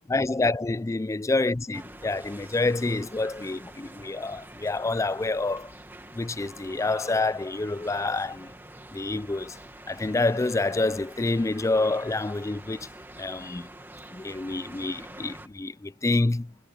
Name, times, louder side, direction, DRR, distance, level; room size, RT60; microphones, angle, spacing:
voice 1, 0.1-5.7 6.1-8.5 8.9-9.6 9.9-12.9 13.2-13.7 14.1-16.5, left 2 dB, 15° left, 0.3 m, -27 dB
sound 1, 1.7-15.5, right 1 dB, 10° right, 1.8 m, -46 dB
head